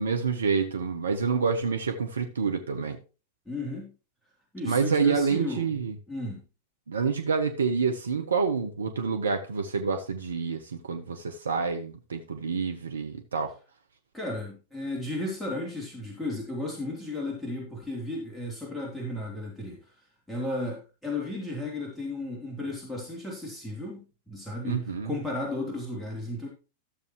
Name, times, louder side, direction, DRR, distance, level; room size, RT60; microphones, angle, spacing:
voice 1, 0.0-3.0 4.6-5.9 6.9-13.5 24.6-25.1, right 5 dB, 80° right, 1.0 m, -28 dB
voice 2, 3.5-3.9 4.5-5.8 6.1-6.4 14.1-19.8 20.3-26.5, left 2 dB, ahead, 3.3 m, -34 dB
13.5 x 6.9 x 3.1 m
figure-of-eight pair, 95°, 0 cm